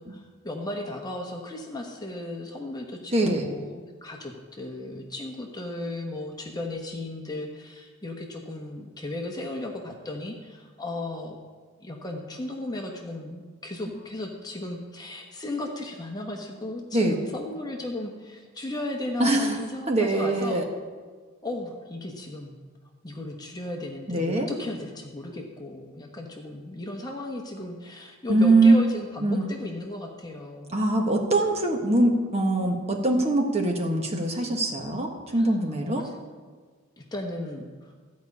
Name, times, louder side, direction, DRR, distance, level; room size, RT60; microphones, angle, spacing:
voice 1, 0.1-11.4 11.8-20.6 21.4-22.6 23.0-30.8 35.3-35.5 35.8-36.1 37.0-37.9, left 2 dB, 20° left, 1 dB, 1.0 m, -35 dB
voice 2, 3.1-3.5 16.9-17.2 19.2-19.5 19.9-20.6 24.1-24.5 28.3-28.8 29.2-29.5 30.7-36.0, right 2 dB, 30° right, 2 dB, 1.3 m, -22 dB
13.5 x 5.3 x 8.4 m, 1.5 s
head